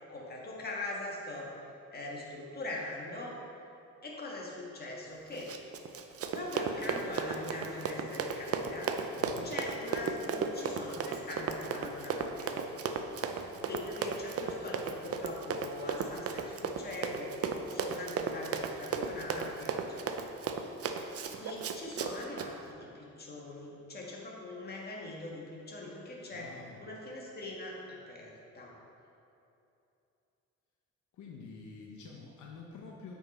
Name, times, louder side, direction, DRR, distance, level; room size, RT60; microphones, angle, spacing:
voice 1, 0.0-1.5 1.9-3.4 4.0-5.5 6.3-8.9 9.4-12.6 13.6-17.4 17.7-20.2 21.3-26.5 26.8-28.8, left 2 dB, 30° left, -2 dB, 1.6 m, -42 dB
Run, 5.3-22.5, right 5 dB, 50° right, 0.6 m, -35 dB
voice 2, 9.2-9.5 13.3-13.6 26.3-26.8 31.1-33.1, left 4 dB, 70° left, -1 dB, 0.9 m, -48 dB
7.9 x 5.6 x 4.2 m, 2.8 s
cardioid pair, 90°, 30 cm